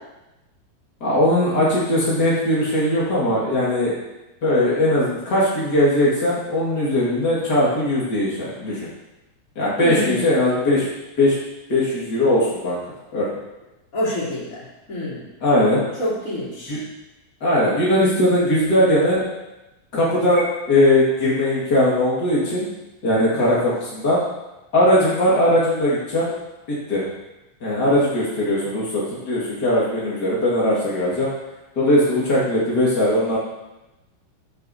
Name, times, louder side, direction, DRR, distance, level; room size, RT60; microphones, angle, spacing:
voice 1, 1.0-3.9 4.4-8.9 9.5-10.9 11.2-11.3 11.7-12.8 13.1-13.3 15.4-15.9 16.7-16.8 17.4-19.2 19.9-22.7 23.0-24.2 24.7-26.3 26.7-27.1 27.6-31.3 31.7-33.4, left 1 dB, 85° left, -7 dB, 0.9 m, -19 dB
voice 2, 9.8-10.2 13.9-15.2 16.0-16.8, left 1 dB, 20° left, -9 dB, 2.7 m, -27 dB
13.5 x 6.4 x 2.8 m, 0.99 s
omnidirectional pair, 5.3 m